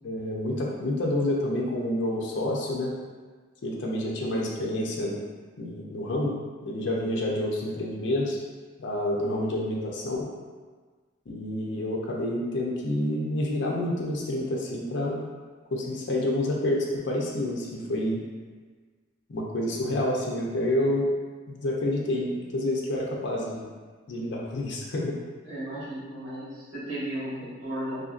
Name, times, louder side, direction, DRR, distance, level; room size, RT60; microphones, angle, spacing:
voice 1, 0.0-2.9 3.6-5.2 5.6-6.3 6.6-8.4 8.8-10.3 11.3-15.3 15.7-18.2 19.3-21.1 21.5-23.7 24.1-25.2, left 1 dB, 60° left, -3 dB, 0.5 m, -28 dB
voice 2, 25.4-28.0, right 1 dB, 75° right, -9 dB, 1.3 m, -35 dB
2.7 x 2.6 x 2.4 m, 1.4 s
head